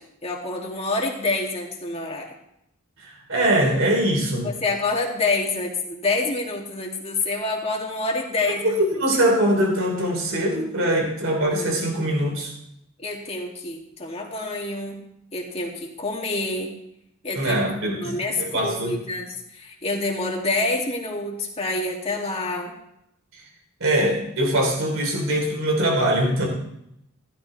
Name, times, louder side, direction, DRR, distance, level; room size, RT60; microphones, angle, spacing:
voice 1, 0.2-2.3 4.4-8.8 13.0-15.0 15.3-16.7 17.2-17.6 18.0-22.7, left 2 dB, 30° left, -1 dB, 2.4 m, -27 dB
voice 2, 3.0-4.5 8.6-12.5 17.3-19.0 23.8-26.5, right 1 dB, 65° right, 1 dB, 3.3 m, -22 dB
15.0 x 13.0 x 3.3 m, 0.78 s
head